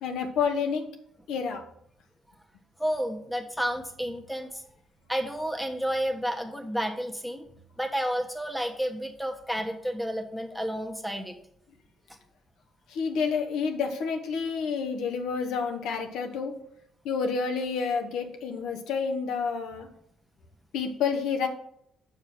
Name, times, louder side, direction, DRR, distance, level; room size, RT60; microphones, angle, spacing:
voice 1, 0.0-0.8 1.3-1.6 12.9-16.5 17.0-19.9 20.7-21.5, left 5 dB, 90° left, 4 dB, 1.0 m, -29 dB
voice 2, 2.8-4.5 5.1-7.4 7.8-11.3, equal, 5° left, 4 dB, 1.1 m, -31 dB
6.4 x 4.9 x 5.8 m, 0.72 s
cardioid pair, 90°, 0 cm